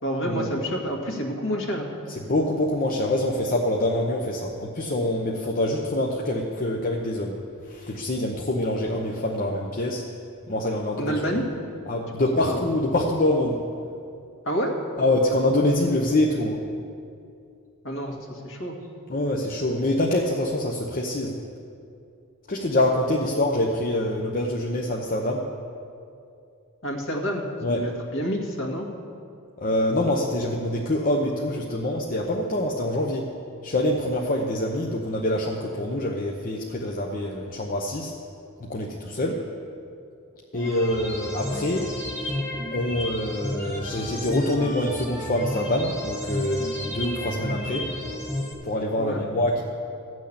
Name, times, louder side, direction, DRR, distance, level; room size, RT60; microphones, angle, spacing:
voice 1, 0.0-1.9 11.0-11.5 12.4-12.6 14.5-14.8 17.8-18.8 23.3-23.4 26.8-28.9 49.0-49.2, equal, 60° left, 0 dB, 1.9 m, -28 dB
voice 2, 2.1-7.3 7.7-10.0 10.5-11.1 11.9-13.6 15.0-16.6 19.1-21.3 22.5-25.4 27.6-27.8 29.6-33.3 33.6-38.1 38.6-39.4 40.5-41.9 42.2-42.4 42.7-47.8 48.6-49.6, left 1 dB, 40° left, -1 dB, 0.8 m, -25 dB
sound 1, 40.5-48.5, left 1 dB, 15° left, 1.6 m, -32 dB
14.0 x 6.3 x 8.7 m, 2.5 s
head